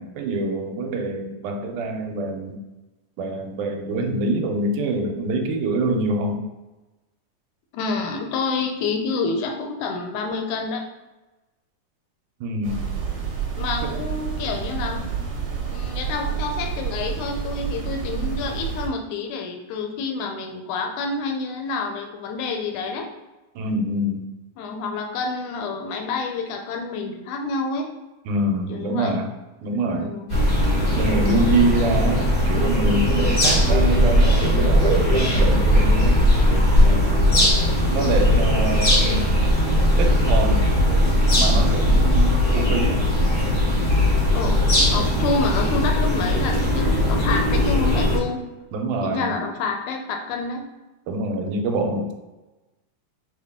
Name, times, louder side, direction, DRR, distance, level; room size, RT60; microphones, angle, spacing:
voice 1, 0.0-2.6 3.2-6.5 12.4-12.9 13.8-14.0 23.6-24.3 28.3-29.3 29.6-30.2 31.0-36.2 36.8-37.6 37.9-39.3 40.0-40.7 41.4-43.1 48.7-49.4 51.1-52.1, right 2 dB, 85° right, 4 dB, 2.1 m, -25 dB
voice 2, 7.7-10.9 13.6-15.0 15.7-23.1 24.6-27.9 28.7-29.2 29.9-30.3 44.3-48.4 49.0-50.7, left 4 dB, 80° left, 3 dB, 2.0 m, -28 dB
sound 1, 12.6-18.9, right 7 dB, 70° right, 2.0 m, -29 dB
sound 2, 30.3-48.2, left 1 dB, 65° left, 0.5 m, -19 dB
6.5 x 2.2 x 3.5 m, 1.1 s
omnidirectional pair, 3.6 m